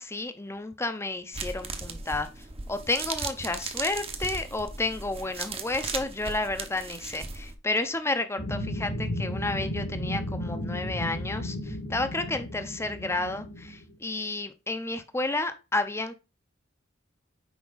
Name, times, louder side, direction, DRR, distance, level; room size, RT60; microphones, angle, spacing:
voice 1, 0.0-2.3 2.7-16.1, left 2 dB, 15° left, 0.7 m, -31 dB
sound 1, 1.3-7.6, right 4 dB, 30° right, 0.9 m, -37 dB
sound 2, 8.4-13.9, left 1 dB, 60° left, 1.7 m, -34 dB
6.1 x 4.8 x 4.0 m
head